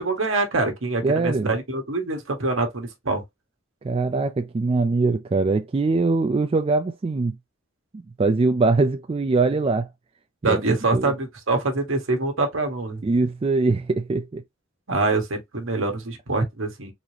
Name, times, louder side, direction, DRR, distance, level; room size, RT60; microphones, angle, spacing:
voice 1, 0.0-3.2 10.4-13.0 14.9-16.9, right 3 dB, 70° right, 1.3 m, -25 dB
voice 2, 1.0-1.5 3.8-7.4 7.9-9.9 10.5-10.6 10.9-11.1 13.0-14.4, right 3 dB, 25° right, 0.3 m, -22 dB
4.0 x 2.8 x 3.2 m
head